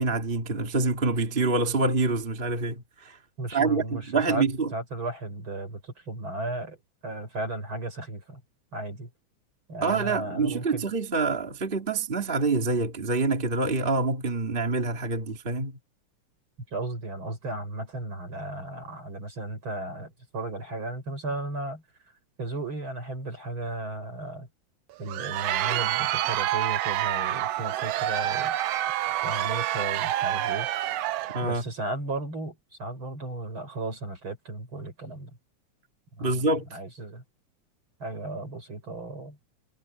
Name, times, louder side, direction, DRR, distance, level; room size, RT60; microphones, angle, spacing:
voice 1, 0.0-3.2 3.5-4.7 9.8-15.8 31.3-31.6 36.2-36.6, right 3 dB, 20° right, 2.1 m, -26 dB
voice 2, 3.4-4.5 4.7-6.8 7.0-8.4 8.7-9.1 9.7-10.8 16.7-21.8 22.4-24.5 25.0-28.5 29.2-30.7 31.4-35.3 36.2-37.2 38.0-39.4, right 2 dB, 40° right, 7.1 m, -35 dB
Crowd, 24.9-31.5, right 13 dB, 75° right, 1.5 m, -28 dB
omnidirectional pair, 3.5 m